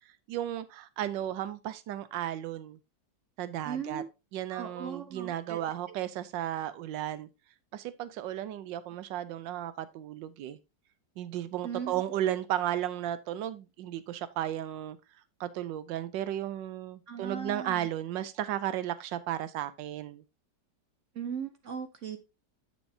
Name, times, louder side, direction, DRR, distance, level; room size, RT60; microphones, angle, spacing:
voice 1, 0.3-2.8 3.4-4.0 4.3-7.3 7.7-10.6 11.2-15.0 15.4-20.2, right 12 dB, 85° right, 1.4 m, -34 dB
voice 2, 3.6-4.1 4.5-5.6 11.6-11.9 17.1-17.8 21.2-22.2, right 7 dB, 55° right, 0.9 m, -38 dB
9.5 x 6.4 x 2.7 m
omnidirectional pair, 1.9 m